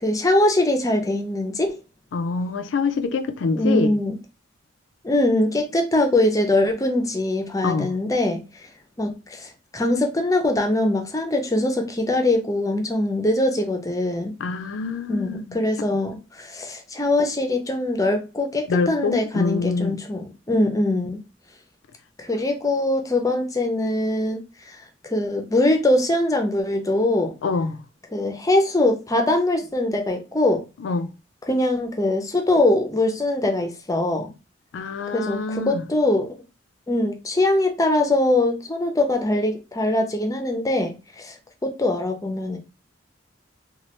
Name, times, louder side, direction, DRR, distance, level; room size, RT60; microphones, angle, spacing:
voice 1, 0.0-1.8 3.5-4.2 5.0-8.4 9.0-14.4 15.1-21.2 22.2-24.8 25.0-27.3 28.1-30.6 31.4-34.3 35.1-36.4 36.9-41.4 41.6-42.6, left 1 dB, 20° left, 0.5 m, -22 dB
voice 2, 2.1-3.9 7.6-7.9 14.4-15.6 18.7-20.0 27.4-27.8 30.8-31.1 34.7-35.8, left 4 dB, 75° left, 0.4 m, -25 dB
3.1 x 2.3 x 2.9 m
head